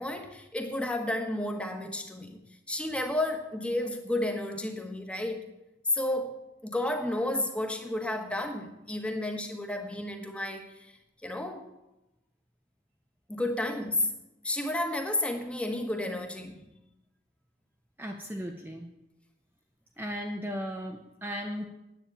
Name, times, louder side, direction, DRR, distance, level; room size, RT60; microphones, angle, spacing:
voice 1, 0.0-2.4 2.7-5.5 5.9-10.9 11.2-11.7 13.3-14.1 14.4-16.7, left 1 dB, 5° left, 1.3 m, -32 dB
voice 2, 18.0-18.9 20.0-21.6, equal, 10° right, 0.8 m, -36 dB
10.0 x 8.7 x 8.7 m
head